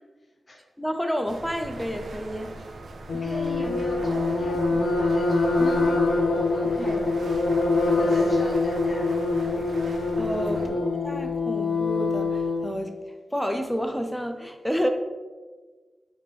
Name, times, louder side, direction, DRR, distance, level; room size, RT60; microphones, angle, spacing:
voice 1, 0.8-2.5 10.2-10.6 11.0-12.9 13.3-14.9, equal, 5° left, 6 dB, 0.4 m, -29 dB
sound 1, 1.3-10.7, right 2 dB, 85° right, 0.5 m, -40 dB
sound 2, 3.1-12.7, left 3 dB, 85° left, 0.6 m, -24 dB
voice 2, 3.1-7.5 8.0-9.1 9.6-9.9 10.5-10.8, left 1 dB, 35° left, -3 dB, 1.1 m, -38 dB
4.2 x 3.4 x 3.4 m, 1.4 s
wide cardioid pair, 115°, 0 cm